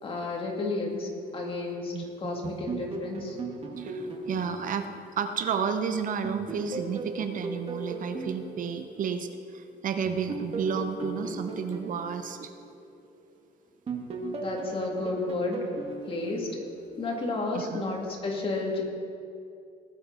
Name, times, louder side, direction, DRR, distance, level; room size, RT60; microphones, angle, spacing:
voice 1, 0.0-1.9 2.2-3.4 14.3-15.6 16.1-16.5 17.0-18.8, left 3 dB, 35° left, -1 dB, 2.5 m, -32 dB
voice 2, 1.9-2.3 3.8-4.9 5.2-12.5 17.5-17.9, right 6 dB, 50° right, 8 dB, 0.8 m, -32 dB
sound 1, 2.4-5.8 6.2-9.5 10.1-13.4 13.9-17.1, right 3 dB, 35° right, 1.7 m, -38 dB
18.5 x 7.6 x 4.1 m, 2.4 s
cardioid pair, 110°, 17 cm